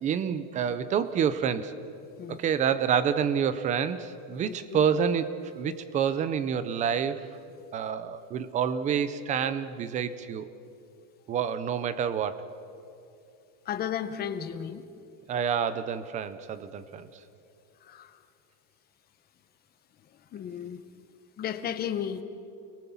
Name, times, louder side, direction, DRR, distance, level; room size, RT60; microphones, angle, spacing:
voice 1, 0.0-1.7 2.3-7.2 7.7-10.5 11.3-12.5 15.3-17.1, right 7 dB, 15° right, 14 dB, 0.5 m, -28 dB
voice 2, 4.5-4.8 13.7-14.8 17.8-18.1 20.3-20.8 21.4-22.2, left 9 dB, 20° left, 9 dB, 1.0 m, -34 dB
30.0 x 22.0 x 7.1 m, 2.6 s
cardioid pair, 175°, 46 cm